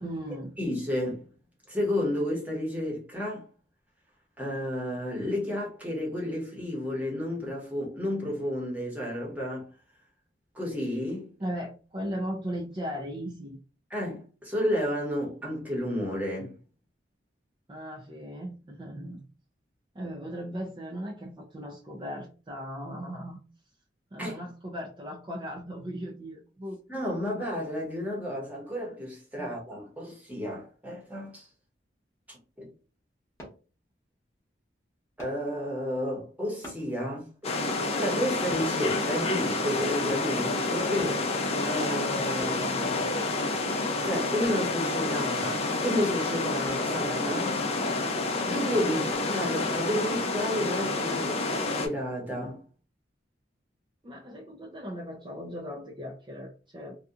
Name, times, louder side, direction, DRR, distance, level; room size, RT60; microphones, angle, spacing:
voice 1, 0.0-0.6 11.4-13.6 17.7-19.2 19.9-23.4 24.1-26.8 29.4-29.5 48.8-49.0 54.0-57.0, equal, 25° right, 0.5 m, -37 dB
voice 2, 0.6-1.2 1.7-3.4 4.4-9.7 10.5-11.3 13.9-16.5 24.2-24.4 26.9-31.5 32.3-32.7 35.2-37.3 38.0-41.2 41.6-43.1 44.0-47.6 48.4-49.0 49.3-52.6, equal, 10° right, 1.0 m, -31 dB
sound 1, 33.4-33.6 35.2-35.4 36.6-36.9 38.5-38.7 39.8-40.0 41.0-41.2 42.4-42.6 44.4-44.7 46.6-46.9 49.1-49.3 49.9-50.0, equal, 15° left, 0.9 m, -45 dB
sound 2, 37.4-51.9, left 3 dB, 35° left, 0.5 m, -29 dB
2.7 x 2.4 x 2.4 m
head